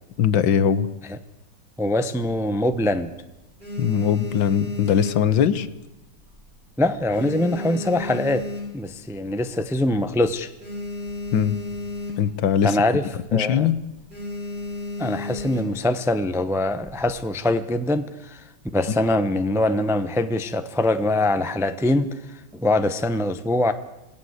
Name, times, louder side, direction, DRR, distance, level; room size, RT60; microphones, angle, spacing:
voice 1, 0.2-0.9 3.8-5.7 11.3-11.6 12.2-12.8 13.3-13.8, left 8 dB, 75° left, 15 dB, 1.7 m, -20 dB
voice 2, 1.8-3.1 6.8-8.5 8.7-10.5 12.6-13.7 15.0-18.4 18.7-23.7, left 1 dB, 5° right, 10 dB, 0.5 m, -23 dB
sound 1, 2.4-3.0 3.4-5.9 6.2-6.6 6.9-9.1 9.6-9.7 9.8-10.0 10.3-12.5 12.8-13.1 13.4-13.6 14.1-15.9 16.6-17.2, left 2 dB, 25° right, 7.2 m, -33 dB
26.5 x 18.0 x 8.1 m, 0.97 s
omnidirectional pair, 2.1 m